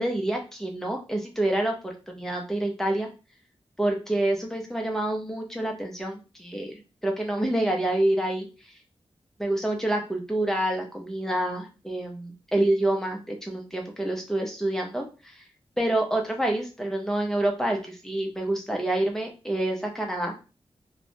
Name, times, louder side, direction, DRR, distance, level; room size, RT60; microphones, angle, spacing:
voice 1, 0.0-3.1 3.8-8.5 9.4-15.4 15.8-20.3, right 1 dB, 5° left, 1 dB, 0.6 m, -27 dB
3.0 x 2.1 x 2.6 m, 0.32 s
wide cardioid pair, 110°, 10 cm